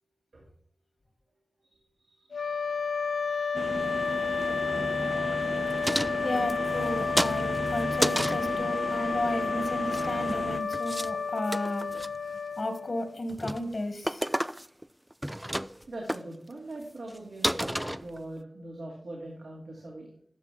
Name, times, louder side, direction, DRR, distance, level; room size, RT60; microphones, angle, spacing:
voice 1, 2.0-2.6 15.9-20.1, right 1 dB, 85° right, -3 dB, 2.5 m, -42 dB
sound 1, 2.3-13.2, left 5 dB, 80° left, 0.3 m, -31 dB
sound 2, 3.5-10.6, right 2 dB, 40° right, 0.8 m, -35 dB
sound 3, 5.8-6.9 7.2-8.5 9.7-10.4 10.7-11.1 11.4-12.1 12.6-12.9 13.3-13.6 14.0-14.9 15.1-15.8 16.1-16.2 16.8-16.9 17.1-17.2 17.4-18.4, equal, 5° right, 0.4 m, -31 dB
voice 2, 6.2-11.8 12.6-14.3, left 1 dB, 55° left, 8 dB, 1.8 m, -33 dB
13.5 x 6.0 x 3.5 m, 0.63 s
wide cardioid pair, 60°, 0 cm